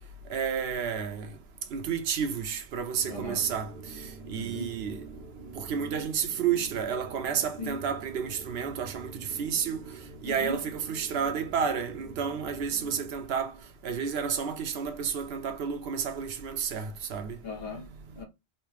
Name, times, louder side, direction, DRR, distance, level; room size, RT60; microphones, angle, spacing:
voice 1, 0.3-1.3 1.7-3.7 4.3-5.0 5.6-9.8 10.2-13.5 13.8-17.4, right 7 dB, 70° right, 0.8 m, -31 dB
sound 1, 2.9-13.3, right 4 dB, 40° right, 0.6 m, -46 dB
voice 2, 3.1-3.5 4.3-4.7 7.6-7.8 10.2-10.6 17.4-18.2, left 3 dB, 65° left, 1.2 m, -38 dB
4.1 x 2.1 x 3.3 m
omnidirectional pair, 1.1 m